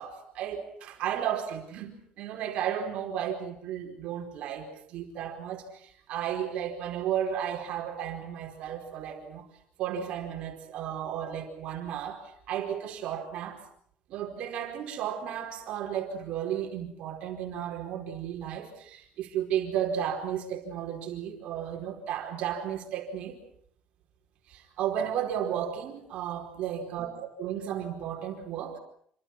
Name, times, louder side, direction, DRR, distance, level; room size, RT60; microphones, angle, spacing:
voice 1, 0.0-9.5 9.8-13.6 14.1-23.4 24.5-28.8, right 9 dB, 50° right, 3 dB, 4.7 m, -34 dB
28.0 x 25.5 x 6.0 m, 0.65 s
cardioid pair, 175°, 3 cm